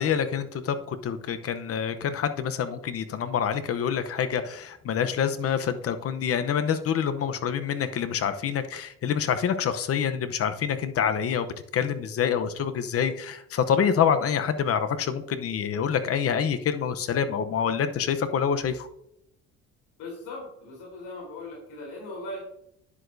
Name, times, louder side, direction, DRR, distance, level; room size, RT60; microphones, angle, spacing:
voice 1, 0.0-11.5 11.7-18.9, left 7 dB, 45° left, 10 dB, 0.8 m, -26 dB
voice 2, 20.0-22.4, left 2 dB, 70° left, -3 dB, 3.7 m, -39 dB
10.0 x 7.9 x 2.7 m, 0.77 s
cardioid pair, 110°, 32 cm